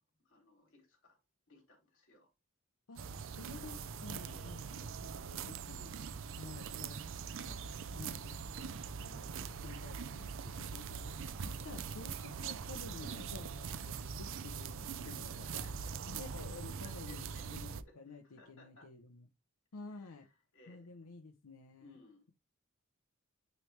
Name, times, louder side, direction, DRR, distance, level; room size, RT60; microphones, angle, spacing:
voice 1, 0.2-1.2 1.5-2.3 4.2-4.6 15.0-15.9 16.8-17.4 17.8-18.9 20.0-21.2 21.8-22.2, left 2 dB, 60° left, 3.0 m, -62 dB
voice 2, 2.9-5.9 6.3-7.6 7.9-9.3 9.6-15.6 16.1-19.3 19.7-20.3 20.7-22.0, left 4 dB, 80° left, 0.7 m, -52 dB
sound 1, 3.0-17.8, right 6 dB, 60° right, 0.5 m, -42 dB
9.3 x 3.2 x 3.3 m
head